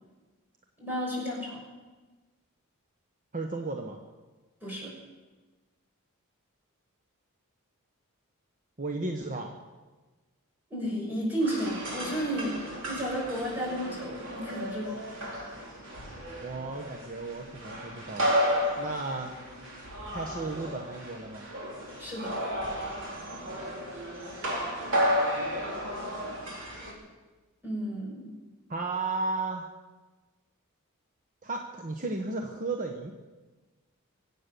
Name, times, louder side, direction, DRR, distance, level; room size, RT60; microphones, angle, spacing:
voice 1, 0.8-1.6 4.6-4.9 10.7-15.0 22.0-22.3 27.6-28.3, equal, 10° right, -4 dB, 6.2 m, -32 dB
voice 2, 3.3-4.0 8.8-9.5 16.4-18.3 18.8-19.3 20.1-21.5 23.4-23.7 28.7-29.7 31.4-33.1, right 3 dB, 35° right, 3 dB, 1.1 m, -34 dB
sound 1, 11.4-26.9, equal, 60° right, 3.8 m, -33 dB
24.0 x 8.7 x 6.9 m, 1.3 s
head